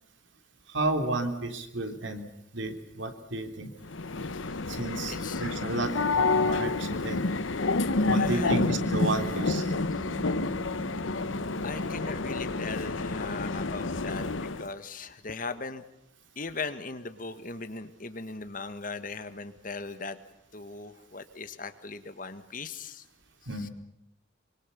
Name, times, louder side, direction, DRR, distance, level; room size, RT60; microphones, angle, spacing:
voice 1, 0.7-2.2 2.5-3.8 4.7-7.2 8.1-9.7 23.5-23.7, right 2 dB, 75° right, 6 dB, 3.3 m, -32 dB
sound 1, 3.8-14.7, left 3 dB, 90° left, 1.1 m, -29 dB
voice 2, 5.1-5.5 7.9-8.6 11.6-15.8 16.4-20.2 20.5-23.0 23.6-23.7, left 4 dB, 45° left, 11 dB, 1.7 m, -39 dB
Bass guitar, 8.0-14.3, right 1 dB, 10° right, 1.9 m, -40 dB
25.0 x 25.0 x 7.0 m, 0.80 s
head